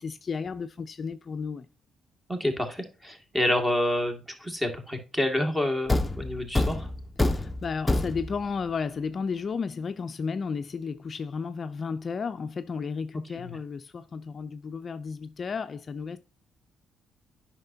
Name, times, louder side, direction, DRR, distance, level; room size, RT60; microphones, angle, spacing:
voice 1, 0.0-1.7 7.2-16.2, left 5 dB, 45° left, 0.5 m, -33 dB
voice 2, 2.3-6.9 13.3-13.6, left 1 dB, 10° right, 2.1 m, -28 dB
Thump thud, 5.9-8.5, left 2 dB, 15° left, 0.8 m, -27 dB
9.5 x 5.8 x 2.8 m
cardioid pair, 90°, 0 cm